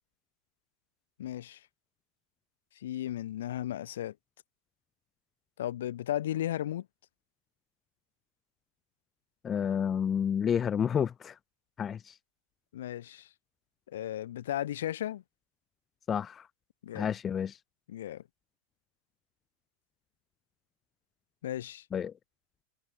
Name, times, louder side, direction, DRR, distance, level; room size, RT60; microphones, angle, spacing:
voice 1, 1.2-1.6 2.8-4.1 5.6-6.9 12.7-13.3 13.9-15.2 16.8-17.1 17.9-18.2 21.4-21.8, left 12 dB, 60° left, 1.5 m, -35 dB
voice 2, 9.4-11.3 11.8-12.1 16.1-16.5 16.9-17.6 21.9-22.1, left 8 dB, 25° left, 0.9 m, -30 dB
figure-of-eight pair, 90°, 0 cm